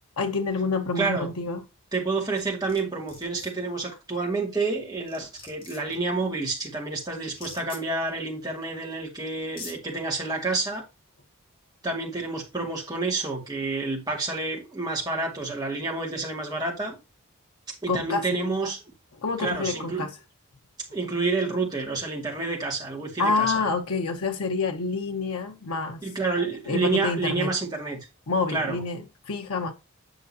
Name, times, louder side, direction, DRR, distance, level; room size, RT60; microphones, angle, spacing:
voice 1, 0.2-1.6 17.9-18.3 19.2-20.1 23.2-26.0 26.7-27.5 28.3-29.7, left 4 dB, 90° left, 0.8 m, -27 dB
voice 2, 1.0-1.3 1.9-10.8 11.8-17.0 17.7-18.8 19.4-20.1 20.9-23.6 26.0-28.0 28.5-28.8, right 3 dB, 20° right, 2.2 m, -29 dB
sound 1, 2.4-2.8 3.1-3.5 4.7-4.8 5.1-5.9 7.3-7.8 8.9-9.0 9.4-9.7, left 3 dB, 40° left, 2.9 m, -42 dB
8.1 x 6.5 x 2.8 m
head